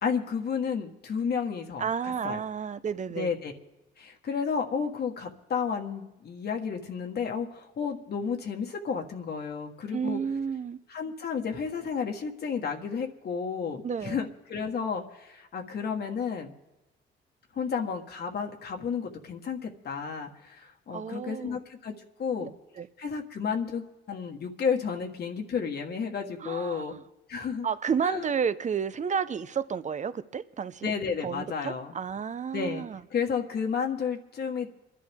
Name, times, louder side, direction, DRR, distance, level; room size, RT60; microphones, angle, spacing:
voice 1, 0.0-2.4 3.1-3.5 4.0-10.2 10.9-16.5 17.5-21.9 22.2-22.5 23.0-26.9 27.3-27.7 28.0-28.3 30.8-31.9 32.5-32.8 33.1-34.7, left 6 dB, 55° left, 1.6 m, -32 dB
voice 2, 1.8-3.3 9.9-10.8 13.8-14.2 20.9-21.6 22.4-22.5 22.8-22.9 26.4-27.0 27.6-30.9 31.2-33.0, right 7 dB, 40° right, 0.7 m, -31 dB
25.5 x 11.5 x 3.6 m
cardioid pair, 90°, 20 cm